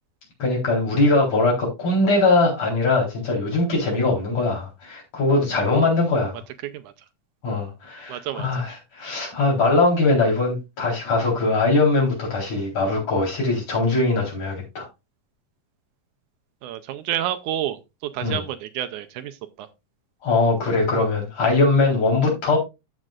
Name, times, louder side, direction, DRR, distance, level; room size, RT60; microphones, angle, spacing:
voice 1, 0.4-6.4 7.4-14.9 18.2-18.4 20.2-22.6, left 3 dB, 50° left, -2 dB, 5.1 m, -21 dB
voice 2, 8.1-8.6 16.6-19.7, right 11 dB, 80° right, 9 dB, 2.0 m, -30 dB
13.5 x 6.4 x 2.5 m, 0.25 s
omnidirectional pair, 3.7 m